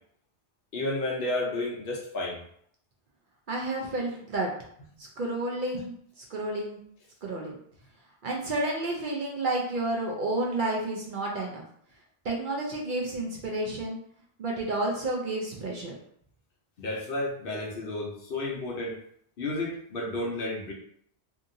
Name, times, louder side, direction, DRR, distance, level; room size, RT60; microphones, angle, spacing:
voice 1, 0.7-2.4 5.7-5.8 16.8-19.0 19.4-20.7, left 2 dB, 60° left, -1 dB, 0.8 m, -32 dB
voice 2, 3.5-4.5 5.0-5.9 6.3-6.8 7.2-7.6 8.2-11.6 12.2-14.0 14.4-16.0, right 2 dB, 60° right, -2 dB, 0.6 m, -30 dB
2.8 x 2.6 x 2.6 m, 0.65 s
omnidirectional pair, 1.1 m